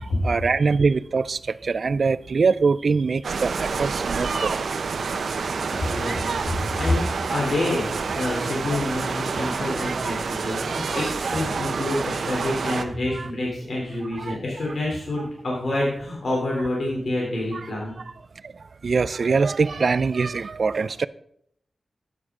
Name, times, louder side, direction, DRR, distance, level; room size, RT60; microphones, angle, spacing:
voice 1, 0.2-5.0 9.8-10.2 10.5-11.4 11.7-12.0 13.1-13.3 14.2-14.4 17.5-17.7 18.4-21.1, right 4 dB, 60° right, 0.4 m, -24 dB
sound 1, 3.2-12.9, right 5 dB, 80° right, 0.8 m, -28 dB
voice 2, 5.7-7.0 7.3-17.9, left 1 dB, 65° left, 3.2 m, -27 dB
12.5 x 9.6 x 3.7 m
wide cardioid pair, 100°, 0 cm